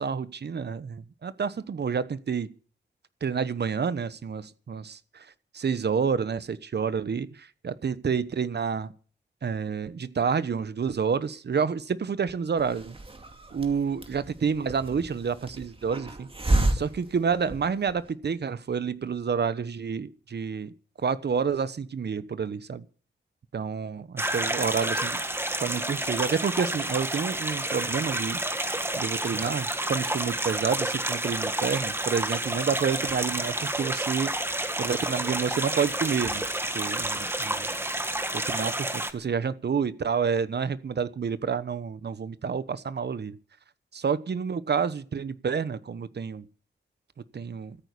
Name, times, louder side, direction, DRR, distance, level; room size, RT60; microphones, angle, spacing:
voice 1, 0.0-2.5 3.2-5.3 5.5-8.9 9.4-13.0 13.5-16.3 16.7-20.7 21.0-22.8 23.5-25.2 25.6-34.3 34.8-36.5 36.7-37.7 38.5-43.4 43.9-46.5 47.3-47.8, right 6 dB, 65° right, 1.1 m, -29 dB
Hiss, 12.6-18.1, right 1 dB, 30° right, 2.5 m, -31 dB
sound 1, 24.2-39.1, right 1 dB, 10° right, 1.6 m, -30 dB
14.0 x 9.4 x 8.4 m
wide cardioid pair, 90°, 19 cm